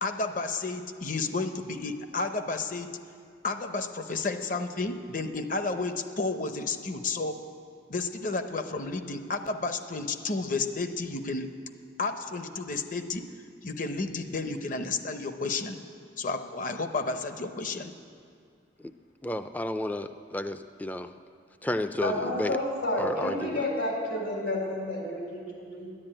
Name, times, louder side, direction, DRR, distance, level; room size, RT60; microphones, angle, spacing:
voice 1, 0.0-2.9 3.4-7.4 7.9-11.6 12.0-13.3 13.6-15.8 16.2-17.9, left 3 dB, 45° left, 8 dB, 0.7 m, -32 dB
voice 2, 19.2-21.1 21.6-22.6 23.0-23.6, left 1 dB, 10° left, 10 dB, 0.3 m, -32 dB
voice 3, 22.0-25.9, left 1 dB, 80° left, 0 dB, 3.7 m, -30 dB
11.0 x 10.5 x 8.8 m, 2.3 s
head